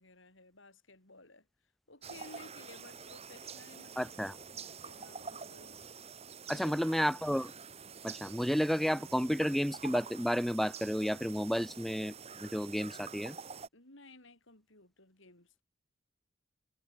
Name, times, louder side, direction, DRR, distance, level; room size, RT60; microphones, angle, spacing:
voice 1, 0.0-1.5 1.9-4.1 4.8-5.8 6.5-6.8 13.7-15.6, left 2 dB, 65° left, 5.3 m, -56 dB
sound 1, 2.0-13.7, right 6 dB, 30° right, 1.5 m, -47 dB
voice 2, 4.0-4.4 6.5-7.5 8.0-13.4, equal, ahead, 0.3 m, -32 dB
head